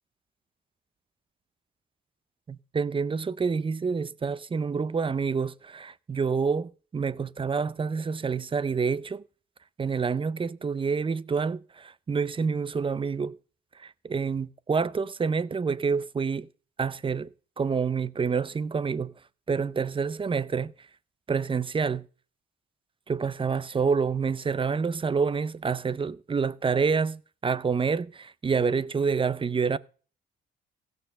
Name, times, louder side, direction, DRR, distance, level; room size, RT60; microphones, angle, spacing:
voice 1, 2.5-9.2 9.8-13.4 13.8-16.5 16.8-17.3 17.6-19.1 19.5-20.7 21.3-22.0 23.1-29.8, right 5 dB, 25° right, 0.6 m, -28 dB
15.5 x 6.6 x 6.6 m
cardioid pair, 90°, 20 cm